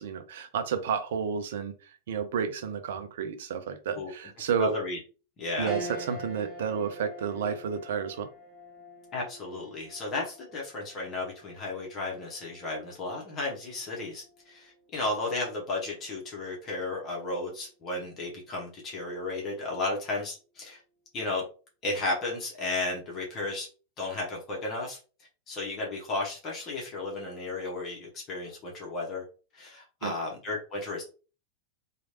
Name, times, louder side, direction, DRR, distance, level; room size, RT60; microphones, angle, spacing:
voice 1, 0.0-4.7 5.6-8.3 30.0-30.1, right 7 dB, 55° right, 9 dB, 0.5 m, -31 dB
voice 2, 4.6-5.0 5.4-5.7 9.1-20.8 21.1-21.4 21.8-23.7 24.0-25.0 25.5-29.2 29.5-31.0, left 2 dB, 30° left, -3 dB, 1.1 m, -34 dB
sound 1, 5.7-15.3 15.7-15.8 17.2-17.6, right 1 dB, 15° right, 1.3 m, -45 dB
3.0 x 2.4 x 2.8 m, 0.35 s
figure-of-eight pair, 90°, 0 cm